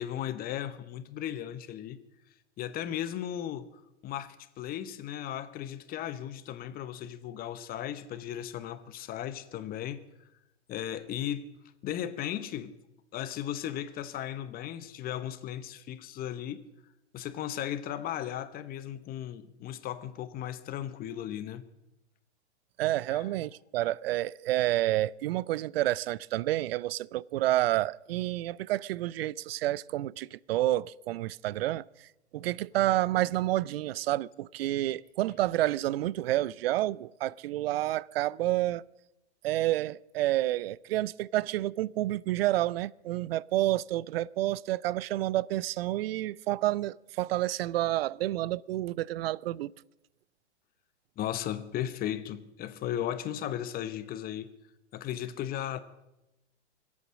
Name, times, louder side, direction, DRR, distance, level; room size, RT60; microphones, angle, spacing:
voice 1, 0.0-2.0 2.6-3.7 4.0-10.0 10.7-11.4 11.8-12.7 13.1-16.6 17.1-21.7 23.1-23.3 51.2-54.5 54.9-55.8, left 11 dB, 25° left, 1.0 m, -36 dB
voice 2, 22.8-32.1 32.3-38.8 39.4-49.7, right 15 dB, 60° right, 0.5 m, -29 dB
25.0 x 8.6 x 6.3 m
hypercardioid pair, 115°, 34 cm